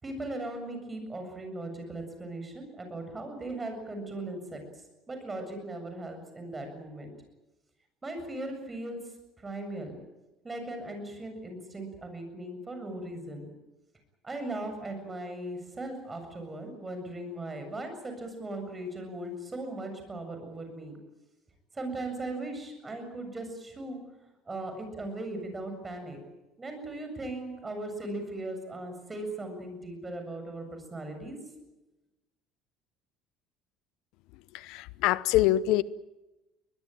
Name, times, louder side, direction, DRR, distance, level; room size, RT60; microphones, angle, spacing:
voice 1, 0.0-4.6 5.1-7.1 8.0-9.0 9.4-10.0 10.4-13.5 14.2-21.0 21.7-24.0 24.5-26.2 26.6-31.4, right 2 dB, 15° right, 6 dB, 7.5 m, -38 dB
voice 2, 34.5-35.8, left 14 dB, 75° left, 17 dB, 0.8 m, -25 dB
22.5 x 21.0 x 9.2 m, 1.0 s
cardioid pair, 130°, 0 cm